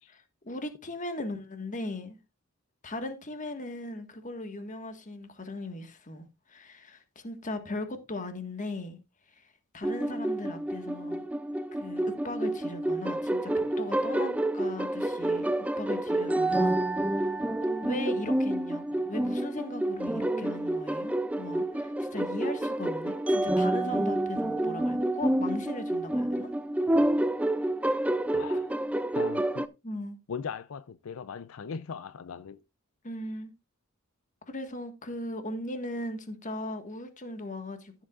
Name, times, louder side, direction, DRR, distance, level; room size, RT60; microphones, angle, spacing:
voice 1, 0.1-2.2 2.8-9.0 9.3-11.3 11.7-15.5 15.8-16.8 17.1-17.3 17.8-26.5 29.8-30.2 33.0-33.5 34.5-38.0, left 1 dB, 40° left, 1.5 m, -38 dB
sound 1, 9.8-29.7, right 1 dB, 5° right, 0.4 m, -28 dB
voice 2, 28.3-28.7 29.1-29.7 30.3-32.6, left 6 dB, 85° left, 0.5 m, -39 dB
14.5 x 7.4 x 2.4 m
head